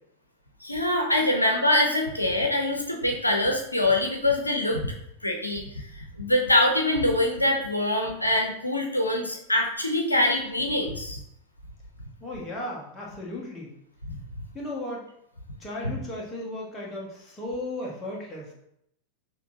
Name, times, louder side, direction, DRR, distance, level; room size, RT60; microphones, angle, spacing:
voice 1, 0.6-4.9 5.2-5.6 6.2-11.2 14.1-14.2, left 1 dB, 85° left, 1 dB, 0.6 m, -24 dB
voice 2, 12.2-13.7 14.5-15.0 15.6-18.5, left 1 dB, 15° left, -4 dB, 1.4 m, -35 dB
6.6 x 2.9 x 2.7 m, 0.75 s
figure-of-eight pair, 90°, 0 cm